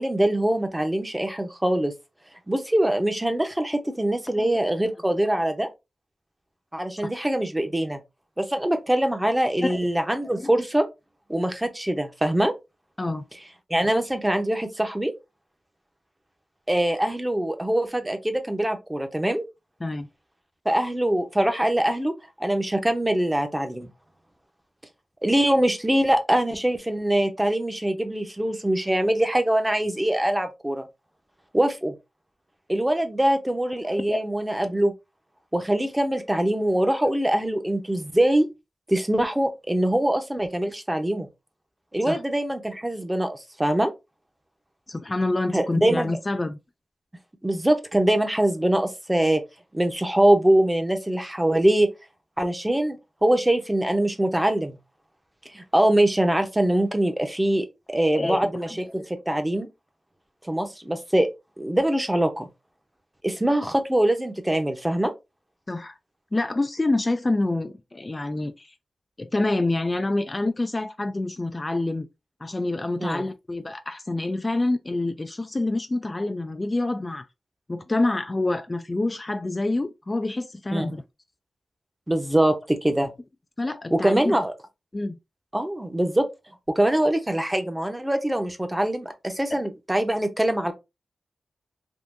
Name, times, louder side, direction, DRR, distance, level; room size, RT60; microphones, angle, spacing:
voice 1, 0.0-1.9 2.5-5.7 6.7-8.0 8.4-10.8 11.3-12.5 13.7-15.1 16.7-19.5 20.6-22.1 22.4-23.9 25.2-30.8 31.5-31.9 32.7-34.9 35.5-38.5 38.9-41.3 41.9-43.9 45.5-46.2 47.4-49.4 49.7-51.9 52.4-54.8 55.5-59.7 60.4-61.3 61.6-62.5 63.2-65.1 73.0-73.2 80.7-80.9 82.1-83.1 83.9-84.5 85.5-86.3 86.7-90.7, right 1 dB, 15° right, 0.7 m, -23 dB
voice 2, 33.8-34.2 42.1-42.2 44.9-46.6 58.1-58.8 65.7-65.9 66.3-68.7 69.2-72.1 72.4-77.2 77.7-81.0 83.6-84.3 84.9-85.2, left 2 dB, 30° left, 0.3 m, -27 dB
3.6 x 2.5 x 2.5 m
cardioid pair, 60°, 0 cm